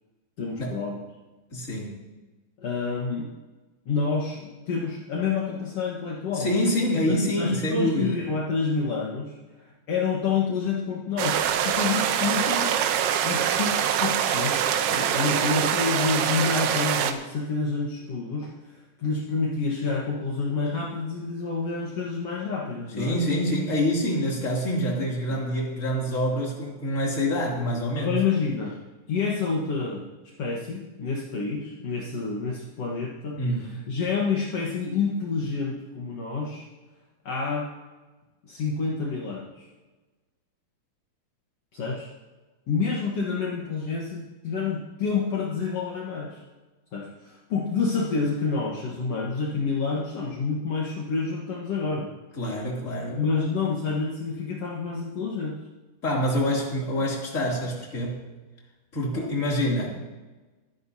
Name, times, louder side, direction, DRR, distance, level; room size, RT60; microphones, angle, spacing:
voice 1, 0.4-1.0 2.6-3.3 3.8-6.5 7.1-12.8 13.2-13.7 14.0-14.6 14.9-18.5 19.0-23.2 25.3-25.4 28.0-28.8 29.1-30.1 30.4-36.6 37.2-37.7 38.4-39.7 41.7-42.1 42.7-46.4 46.9-52.1 53.1-55.6 59.1-59.2, left 4 dB, 65° left, -3 dB, 1.6 m, -28 dB
voice 2, 1.5-2.0 6.3-8.2 23.0-28.2 33.4-33.7 52.4-53.2 56.0-58.2 58.9-59.9, equal, 20° left, -3 dB, 2.5 m, -26 dB
sound 1, 11.2-17.1, right 9 dB, 80° right, 2.7 m, -24 dB
24.0 x 10.5 x 2.8 m, 1.2 s
omnidirectional pair, 4.9 m